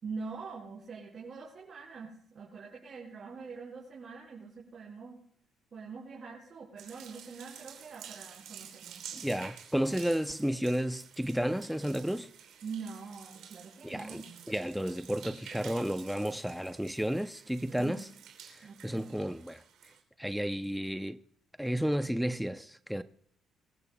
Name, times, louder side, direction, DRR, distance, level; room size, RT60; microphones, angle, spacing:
voice 1, 0.0-5.2 5.7-9.1 12.6-14.4 17.7-18.1 18.6-19.2, right 5 dB, 40° right, 4.8 m, -44 dB
sound 1, 6.8-20.0, right 8 dB, 80° right, 3.0 m, -51 dB
voice 2, 9.1-12.3 13.8-14.2 14.5-18.0 18.5-19.6 20.2-21.2 21.6-23.0, equal, ahead, 0.6 m, -32 dB
25.0 x 15.5 x 2.3 m
cardioid pair, 105°, 0 cm